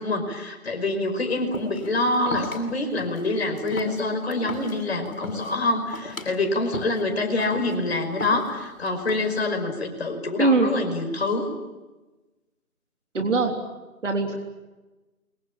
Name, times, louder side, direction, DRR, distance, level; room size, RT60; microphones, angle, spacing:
voice 1, 0.0-11.5, left 2 dB, 45° left, 5 dB, 5.4 m, -26 dB
sound 1, 1.5-1.9 2.3-2.6 3.0-3.3 3.6-4.8 5.1-5.6 5.9-6.3 6.7-7.0 7.4-7.8 8.2-8.7 9.1-9.5, left 2 dB, 70° left, 7.4 m, -35 dB
voice 2, 10.4-10.7 13.1-13.5 14.0-14.4, right 3 dB, 55° right, 3 dB, 3.6 m, -21 dB
28.0 x 24.0 x 8.8 m, 1.1 s
figure-of-eight pair, 160°, 43 cm